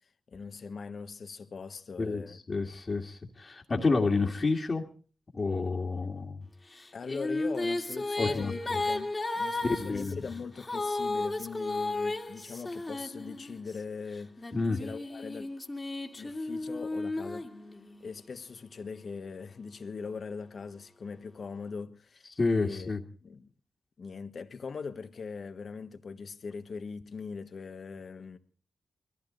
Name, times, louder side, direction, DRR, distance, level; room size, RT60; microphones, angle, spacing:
voice 1, 0.3-2.4 6.9-15.5 16.2-17.5 18.0-22.3 22.5-22.9 23.2-23.5 24.0-28.4, left 5 dB, 65° left, 1.4 m, -41 dB
voice 2, 2.0-4.8 5.3-6.4 8.2-8.8 9.6-10.2 14.5-14.8 22.4-23.0, left 3 dB, 45° left, 2.1 m, -29 dB
Female singing, 6.8-13.7 14.4-18.1, left 2 dB, 25° left, 2.1 m, -34 dB
22.5 x 15.0 x 4.0 m
cardioid pair, 55°, 0 cm